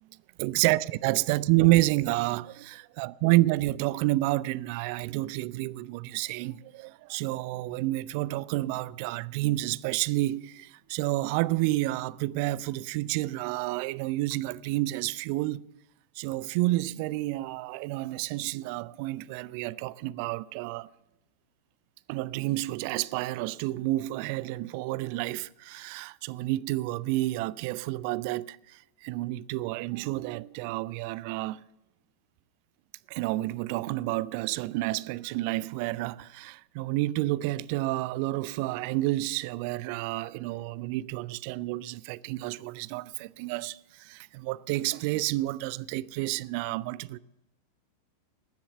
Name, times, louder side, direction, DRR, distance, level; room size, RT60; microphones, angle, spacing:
voice 1, 0.4-15.7 16.2-20.9 22.1-31.7 33.1-47.2, right 18 dB, 45° right, 0.4 m, -29 dB
20.0 x 7.1 x 6.7 m
figure-of-eight pair, 90°, 0 cm